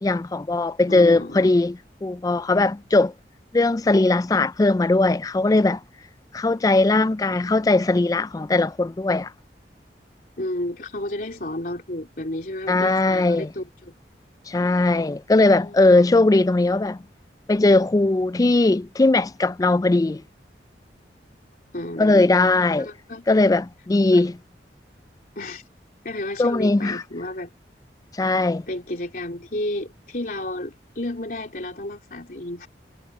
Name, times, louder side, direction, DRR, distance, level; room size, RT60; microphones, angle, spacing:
voice 1, 0.0-3.1 3.5-5.8 6.3-9.3 12.7-13.5 14.5-17.0 17.5-20.2 22.0-22.9 23.3-24.4 26.4-27.0 28.1-28.6, left 2 dB, 20° left, 0.3 m, -19 dB
voice 2, 0.9-1.6 10.4-13.9 15.3-16.1 21.7-22.2 22.8-23.2 24.1-24.2 25.4-25.6 26.0-27.5 28.7-32.7, left 1 dB, 50° left, 3.7 m, -32 dB
head